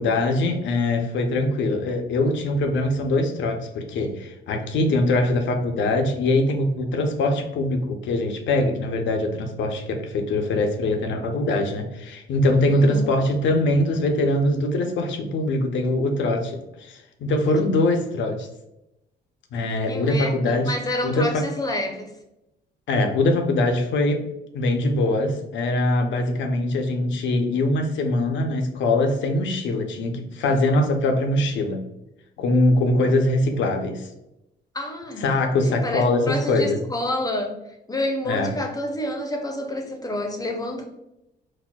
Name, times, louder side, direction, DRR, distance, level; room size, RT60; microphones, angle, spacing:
voice 1, 0.0-18.5 19.5-20.7 21.0-21.4 22.9-24.3 24.5-31.8 32.4-34.1 35.2-36.8 38.3-38.5, left 2 dB, 70° left, 4 dB, 0.6 m, -22 dB
voice 2, 12.7-13.1 19.9-22.1 34.7-35.2 35.7-37.6 37.9-40.8, left 1 dB, 20° left, 3 dB, 0.6 m, -28 dB
4.0 x 2.1 x 2.2 m, 0.89 s
cardioid pair, 90°, 20 cm